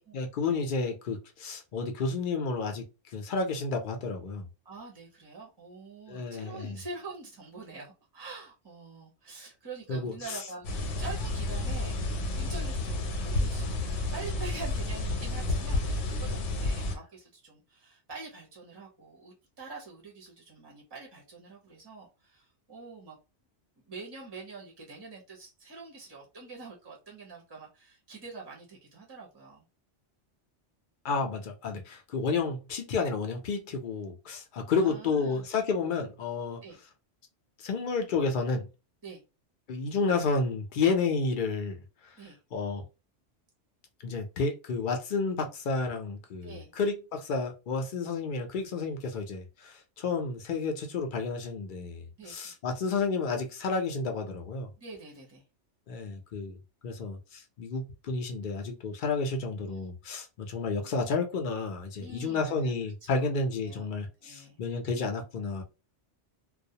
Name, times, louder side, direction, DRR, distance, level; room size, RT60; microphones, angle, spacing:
voice 1, 0.1-2.8 3.1-4.5 6.1-6.8 9.9-10.4 16.8-16.9 31.0-36.6 37.6-38.7 39.7-41.8 42.5-42.8 44.0-54.7 55.9-56.6 56.8-65.6, left 4 dB, 60° left, 0.6 m, -31 dB
voice 2, 4.6-13.8 14.1-23.2 23.9-29.6 34.7-35.4 36.6-36.8 39.0-39.2 42.2-42.4 46.4-46.7 52.2-52.5 54.8-55.4 59.6-59.9 62.0-62.7 63.0-63.3 63.6-63.9 64.2-64.6, right 3 dB, 30° right, 0.5 m, -45 dB
sound 1, 10.6-17.0, left 2 dB, 90° left, 0.9 m, -31 dB
2.3 x 2.0 x 2.7 m
omnidirectional pair, 1.2 m